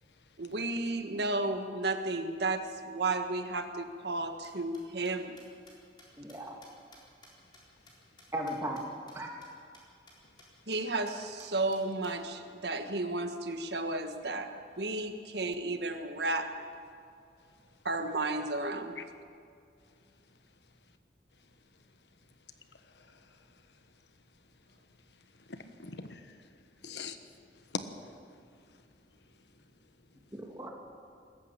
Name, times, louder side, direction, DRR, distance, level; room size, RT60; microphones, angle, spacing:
voice 1, 0.4-5.4 10.7-14.5 14.8-16.5 17.8-19.0, right 2 dB, 75° right, 1.5 m, -33 dB
sound 1, 4.2-8.8 9.1-9.2 9.4-9.5 9.7-9.8 10.1-10.5 10.7-10.8 11.1-12.1, left 2 dB, 25° left, 4.0 m, -57 dB
voice 2, 6.2-6.5 8.3-8.8 9.1-9.4 30.3-30.7, right 1 dB, 15° right, 2.5 m, -37 dB
voice 3, 10.2-10.7 19.0-19.1 20.3-20.4 21.4-21.5 21.8-22.0 22.6-23.9 24.7-29.9, left 4 dB, 80° left, 1.3 m, -47 dB
20.5 x 14.5 x 8.9 m
head